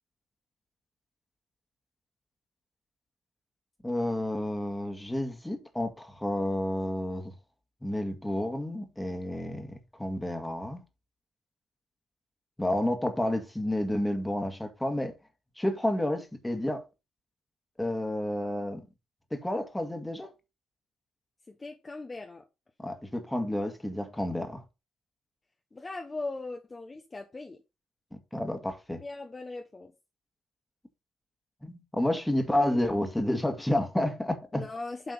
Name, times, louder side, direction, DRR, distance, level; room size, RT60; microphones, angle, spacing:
voice 1, 3.8-7.3 7.8-10.8 12.6-15.1 15.6-16.8 17.8-18.8 19.3-20.3 22.8-24.6 28.3-29.0 31.6-34.6, left 1 dB, 10° left, 1.8 m, -30 dB
voice 2, 21.5-22.4 25.7-27.6 28.9-29.9 34.5-35.1, left 3 dB, 25° left, 1.1 m, -39 dB
8.0 x 4.2 x 5.5 m
cardioid pair, 90°, 0 cm